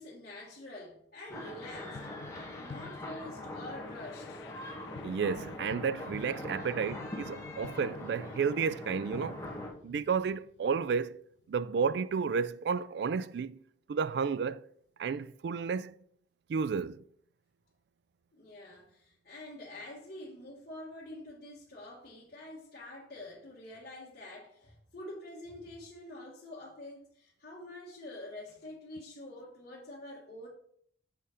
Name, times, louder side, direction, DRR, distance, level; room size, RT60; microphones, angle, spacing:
voice 1, 0.0-2.0 2.6-4.5 18.3-30.5, left 1 dB, 45° left, 1.6 m, -46 dB
sound 1, 1.3-11.7, left 5 dB, 65° left, 0.3 m, -51 dB
sound 2, 1.3-9.7, left 1 dB, 15° left, 1.3 m, -42 dB
voice 2, 5.0-9.4 9.8-11.2 11.5-13.6 13.9-14.6 15.0-15.9 16.5-17.0, right 6 dB, 60° right, 0.3 m, -32 dB
7.6 x 4.2 x 4.9 m
head